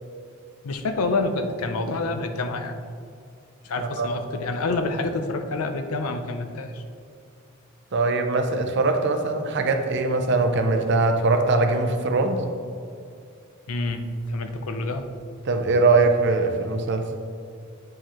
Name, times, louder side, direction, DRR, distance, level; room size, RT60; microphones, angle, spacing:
voice 1, 0.6-2.8 3.6-6.8 13.7-15.0, left 2 dB, 80° left, 7 dB, 0.6 m, -27 dB
voice 2, 3.8-4.1 7.9-12.4 15.5-17.0, right 3 dB, 50° right, 5 dB, 0.6 m, -21 dB
8.6 x 4.7 x 3.0 m, 2.4 s
head